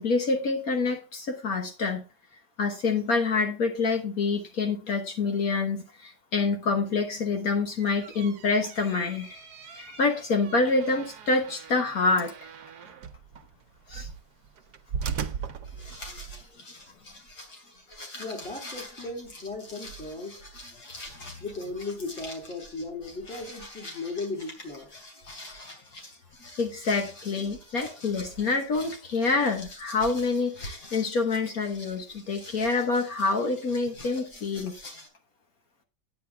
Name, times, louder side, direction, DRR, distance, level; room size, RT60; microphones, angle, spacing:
voice 1, 0.0-2.0 2.6-12.5 13.9-14.1 26.6-34.8, left 4 dB, 65° left, 1.7 m, -27 dB
sound 1, 7.6-16.4, right 6 dB, 85° right, 1.4 m, -39 dB
sound 2, 15.6-35.1, left 1 dB, 80° left, 3.4 m, -45 dB
voice 2, 18.2-20.4 21.4-24.9, left 3 dB, 5° left, 2.5 m, -36 dB
9.6 x 9.6 x 3.4 m
omnidirectional pair, 1.7 m